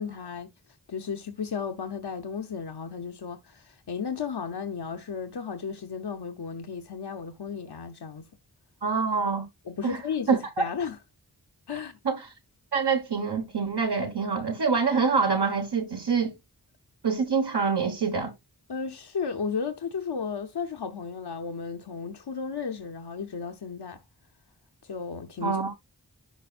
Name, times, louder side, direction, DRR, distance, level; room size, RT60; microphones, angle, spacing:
voice 1, 0.0-8.3 9.7-11.0 11.7-12.0 18.7-24.0 24.8-25.7, left 6 dB, 80° left, 0.8 m, -34 dB
voice 2, 8.8-9.4 9.8-10.0 10.3-10.6 12.0-12.3 12.7-16.3 17.0-18.3 25.4-25.7, right 5 dB, 80° right, 1.4 m, -25 dB
11.0 x 5.0 x 2.4 m
wide cardioid pair, 40°, 39 cm